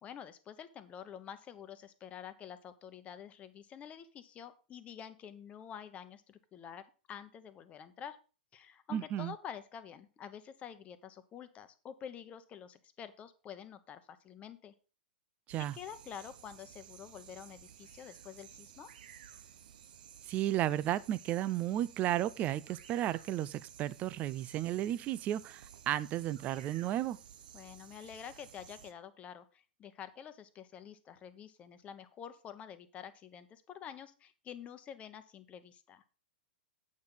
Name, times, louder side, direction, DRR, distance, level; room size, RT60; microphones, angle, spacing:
voice 1, 0.0-8.2 8.5-14.7 15.7-18.9 27.5-36.0, left 8 dB, 25° left, 1.0 m, -48 dB
voice 2, 8.9-9.3 15.5-15.8 20.3-27.2, right 13 dB, 30° right, 0.5 m, -33 dB
sound 1, 15.5-28.9, right 9 dB, 60° right, 0.9 m, -55 dB
8.6 x 5.8 x 5.6 m
figure-of-eight pair, 105°, 5 cm